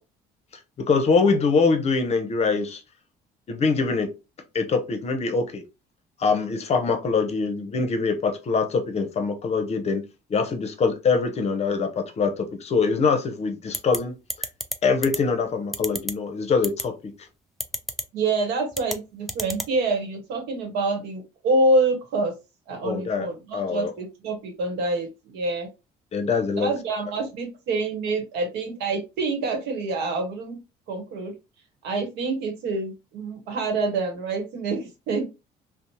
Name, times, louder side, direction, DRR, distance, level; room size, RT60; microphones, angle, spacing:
voice 1, 0.8-2.8 3.5-4.1 4.5-5.6 6.2-10.0 10.3-14.5 14.8-17.1 22.8-23.3 23.5-23.9 26.1-26.7, left 4 dB, 40° left, 0.6 m, -23 dB
sound 1, 13.7-14.0 14.3-14.7 15.0-15.2 15.7-16.1 16.6-16.8 17.6-18.0 18.7-19.0 19.3-19.7, equal, ahead, 0.3 m, -28 dB
voice 2, 18.1-22.3 22.7-25.7 26.5-30.6 30.9-31.3 31.8-35.2, right 2 dB, 90° right, 0.9 m, -26 dB
2.6 x 2.0 x 2.9 m
cardioid pair, 110°, 17 cm